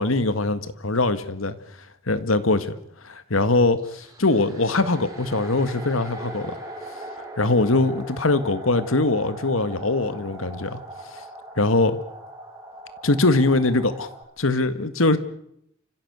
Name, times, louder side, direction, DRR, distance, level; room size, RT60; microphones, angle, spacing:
voice 1, 0.0-1.6 2.1-2.8 3.0-6.6 7.4-10.8 11.6-12.0 13.0-14.1 14.4-15.2, left 2 dB, 80° left, 1.8 m, -22 dB
sound 1, 3.8-14.2, right 1 dB, 15° right, 6.1 m, -40 dB
29.0 x 15.5 x 8.2 m
head